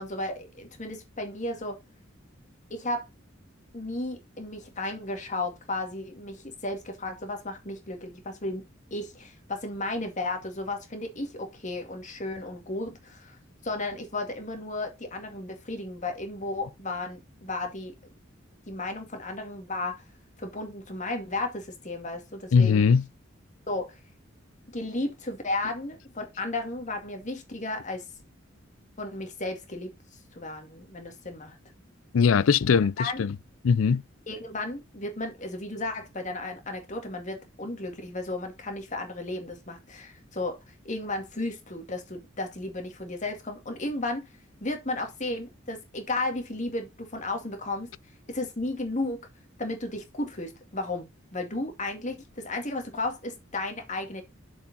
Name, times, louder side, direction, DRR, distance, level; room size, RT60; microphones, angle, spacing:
voice 1, 0.0-1.8 2.7-3.1 3.7-8.6 8.9-13.4 13.6-17.9 18.7-20.0 20.4-22.8 23.7-24.0 24.7-28.0 29.0-29.9 30.3-31.6 33.0-33.2 34.3-40.6 40.8-44.3 44.6-47.9 48.3-49.3 49.6-54.2, left 2 dB, 40° left, 2.1 m, -34 dB
voice 2, 22.5-23.0 32.1-33.4 33.6-34.0, left 6 dB, 90° left, 0.4 m, -21 dB
7.0 x 5.0 x 4.1 m
head